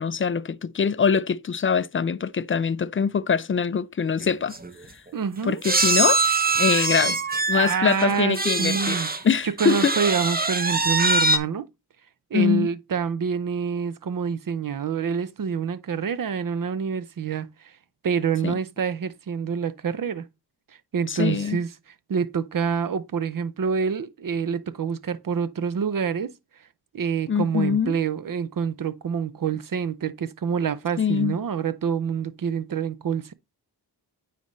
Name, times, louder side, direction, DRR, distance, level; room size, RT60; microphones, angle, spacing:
voice 1, 0.0-4.5 5.4-6.2 6.6-7.2 7.5-10.0 12.3-12.7 18.4-18.6 21.1-21.6 27.3-28.0 31.0-31.4, left 6 dB, 30° left, 0.4 m, -23 dB
sound 1, 4.2-4.3 4.5-4.7 5.6-9.2 9.6-11.4, right 3 dB, 20° right, 0.8 m, -23 dB
voice 2, 5.1-5.6 7.5-9.1 9.4-11.7 12.3-17.5 18.0-20.3 20.9-21.7 22.1-26.3 26.9-33.3, right 6 dB, 50° right, 0.6 m, -27 dB
9.3 x 4.0 x 3.1 m
cardioid pair, 55°, 42 cm